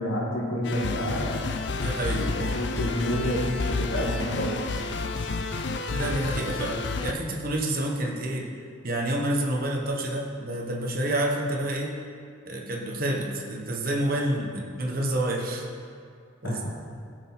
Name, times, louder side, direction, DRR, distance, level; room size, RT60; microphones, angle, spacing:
voice 1, 0.0-1.5 1.8-3.4 3.7-4.5 16.4-16.7, equal, 85° left, -2 dB, 2.1 m, -29 dB
sound 1, 0.6-7.1, left 3 dB, 55° left, 0.5 m, -30 dB
voice 2, 1.8-2.3 5.9-8.5 8.8-12.0 12.5-15.7 16.4-16.7, right 1 dB, 45° right, -1 dB, 1.2 m, -28 dB
15.5 x 6.4 x 4.2 m, 2.3 s
head